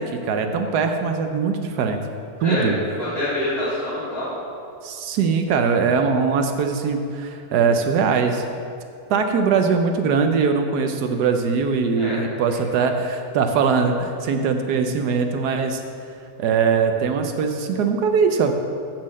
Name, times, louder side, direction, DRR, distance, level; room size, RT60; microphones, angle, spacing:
voice 1, 0.0-2.0 2.4-2.7 4.8-8.4 9.1-15.8 16.4-18.5, right 5 dB, 80° right, 6 dB, 1.3 m, -21 dB
voice 2, 2.4-4.3 11.9-12.3, left 1 dB, 65° left, -12 dB, 2.9 m, -26 dB
7.6 x 7.3 x 7.5 m, 2.5 s
omnidirectional pair, 1.7 m